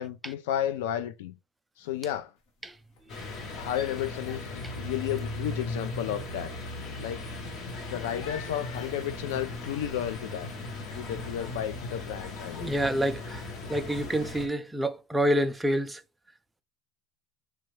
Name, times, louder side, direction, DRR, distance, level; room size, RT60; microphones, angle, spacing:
voice 1, 0.0-1.3 1.8-2.3 3.5-6.5 7.0-7.3 7.9-10.5 10.9-12.7, left 10 dB, 90° left, 0.4 m, -32 dB
sound 1, 2.4-2.6 2.9-3.3 3.7-9.7, left 5 dB, 70° left, 1.0 m, -51 dB
sound 2, 3.1-14.5, left 2 dB, 45° left, 0.9 m, -38 dB
voice 2, 12.6-16.0, equal, 5° right, 0.3 m, -28 dB
3.0 x 2.4 x 3.1 m
supercardioid pair, 135°, 0 cm